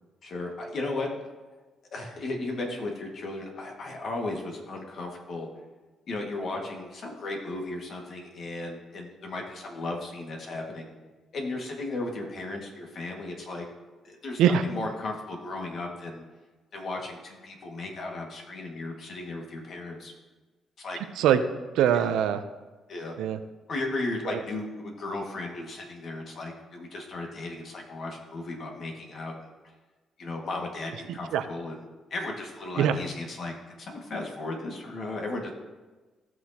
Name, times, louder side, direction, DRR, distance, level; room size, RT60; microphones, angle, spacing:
voice 1, 0.2-1.1 1.9-5.5 6.1-10.9 11.3-13.6 14.0-16.2 16.7-20.1 20.8-21.0 22.9-23.2 23.7-29.3 30.2-31.8 32.1-35.5, left 2 dB, 55° left, 1 dB, 1.9 m, -35 dB
voice 2, 21.7-22.4 23.2-23.4 24.2-24.4 31.1-31.4 32.8-33.0, right 9 dB, 90° right, 10 dB, 0.6 m, -23 dB
16.5 x 6.1 x 2.9 m, 1.3 s
cardioid pair, 90°, 0 cm